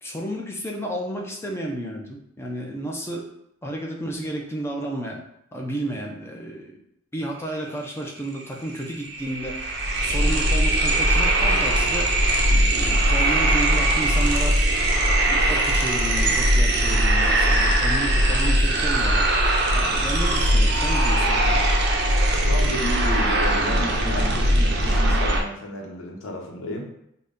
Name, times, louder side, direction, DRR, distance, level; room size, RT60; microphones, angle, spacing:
voice 1, 0.0-3.3 3.6-5.2 5.5-6.8 7.1-14.6 15.3-19.3 19.7-21.7, right 1 dB, 10° left, 0 dB, 0.5 m, -32 dB
sound 1, 8.4-8.5 8.7-25.4, right 1 dB, 50° right, 0.5 m, -20 dB
voice 2, 22.5-26.9, left 1 dB, 85° left, 0 dB, 0.8 m, -32 dB
3.8 x 2.2 x 3.6 m, 0.76 s
head